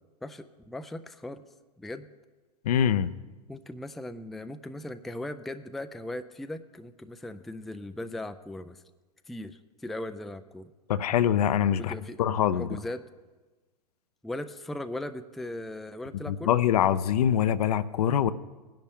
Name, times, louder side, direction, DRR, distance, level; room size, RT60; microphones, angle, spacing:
voice 1, 0.2-1.5 1.8-2.1 3.5-8.8 9.3-10.7 11.8-12.2 12.6-13.0 14.2-16.6, left 1 dB, ahead, 10 dB, 0.3 m, -38 dB
voice 2, 2.6-3.1 10.9-11.9 12.2-12.7 16.3-18.3, left 9 dB, 65° left, 15 dB, 0.6 m, -24 dB
19.0 x 10.5 x 3.6 m, 1.2 s
hypercardioid pair, 100°, 21 cm